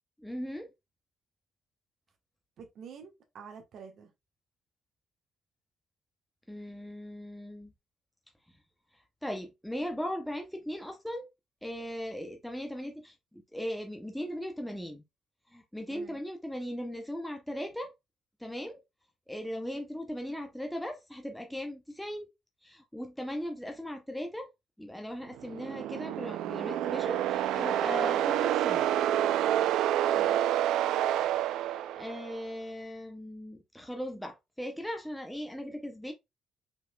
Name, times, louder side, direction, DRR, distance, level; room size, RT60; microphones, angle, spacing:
voice 1, 0.2-0.7 6.5-7.7 9.2-11.3 11.6-15.0 15.5-17.9 18.4-18.8 19.3-22.3 22.6-24.5 24.8-28.9 31.6-36.1, equal, ahead, 0.6 m, -38 dB
voice 2, 2.6-4.1 15.9-16.2 30.1-30.4, right 6 dB, 50° right, 1.2 m, -48 dB
sound 1, 25.4-32.4, right 11 dB, 80° right, 0.4 m, -28 dB
5.7 x 4.0 x 2.2 m
cardioid pair, 175°, 0 cm